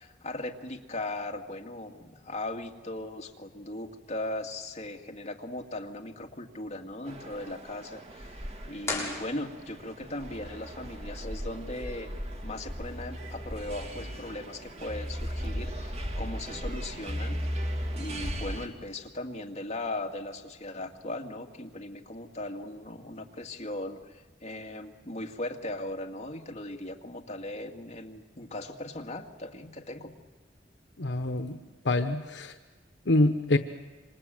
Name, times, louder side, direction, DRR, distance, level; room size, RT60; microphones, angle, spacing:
voice 1, 0.0-12.1 12.4-17.4 17.9-30.1, left 1 dB, 40° left, 2 dB, 2.3 m, -38 dB
sound 1, 7.1-18.7, equal, 35° right, 2.4 m, -37 dB
sound 2, 8.8-10.0, left 3 dB, 15° left, 6.8 m, -35 dB
voice 2, 31.0-31.6 31.8-32.5 33.1-33.6, left 2 dB, 75° left, 8 dB, 1.1 m, -25 dB
27.0 x 26.0 x 7.8 m, 1.3 s
head